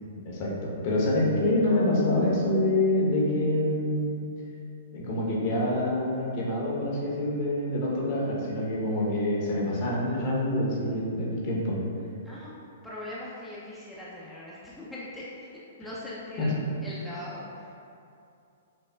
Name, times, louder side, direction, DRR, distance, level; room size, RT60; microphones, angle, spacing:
voice 1, 0.1-4.3 4.9-11.8 16.4-16.6, left 1 dB, 45° left, -4 dB, 0.8 m, -26 dB
voice 2, 12.2-12.5 12.8-16.5 16.8-17.7, left 1 dB, 5° left, -9 dB, 0.4 m, -40 dB
5.4 x 2.0 x 2.2 m, 2.6 s
hypercardioid pair, 135°, 0 cm